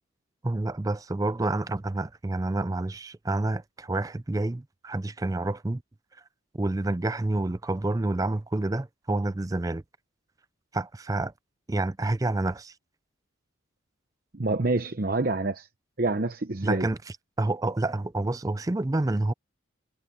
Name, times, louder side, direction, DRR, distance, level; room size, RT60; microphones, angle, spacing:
voice 1, 0.4-5.8 6.5-9.8 10.7-11.3 11.7-12.7 16.6-17.0 17.4-19.3, right 2 dB, 15° right, 0.4 m, -28 dB
voice 2, 14.3-15.7 16.0-16.9, right 2 dB, 45° right, 0.9 m, -27 dB
head